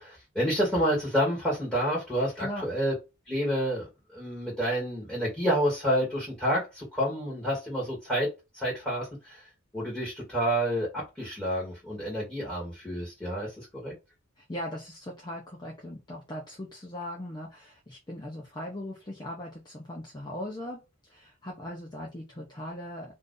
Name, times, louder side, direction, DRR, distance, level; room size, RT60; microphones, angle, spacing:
voice 1, 0.0-2.9 3.3-8.3 8.5-9.4 9.7-13.9, equal, 5° left, 1.4 m, -29 dB
voice 2, 2.4-2.7 14.4-23.1, left 1 dB, 20° left, 0.6 m, -39 dB
2.6 x 2.6 x 3.6 m
head